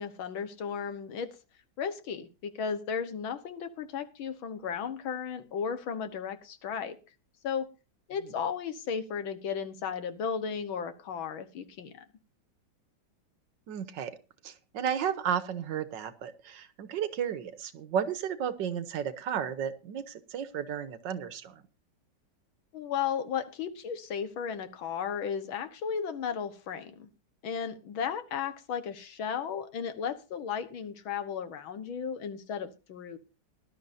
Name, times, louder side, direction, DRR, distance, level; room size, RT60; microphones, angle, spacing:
voice 1, 0.0-1.4 1.8-7.0 7.4-7.7 8.1-11.9 22.7-27.1 27.4-33.2, left 7 dB, 85° left, 10 dB, 2.0 m, -35 dB
voice 2, 13.7-14.1 14.4-21.6, right 8 dB, 70° right, 12 dB, 1.6 m, -33 dB
19.0 x 11.5 x 2.7 m, 0.32 s
omnidirectional pair, 2.1 m